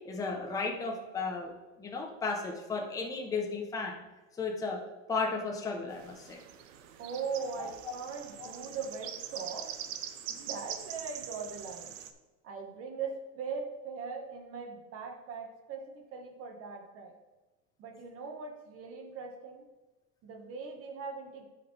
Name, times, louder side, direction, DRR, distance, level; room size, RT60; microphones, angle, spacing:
voice 1, 0.0-1.5 1.8-4.0 4.4-4.8 5.1-6.4 7.6-7.7 8.4-8.5, left 4 dB, 10° left, 1 dB, 0.7 m, -34 dB
sound 1, 5.9-12.1, right 10 dB, 85° right, 0.9 m, -43 dB
voice 2, 7.0-9.8 10.3-12.0 12.4-17.1 17.8-19.7 20.2-21.5, right 5 dB, 35° right, 3 dB, 1.4 m, -40 dB
11.5 x 5.0 x 3.3 m, 1.1 s
supercardioid pair, 160°, 38 cm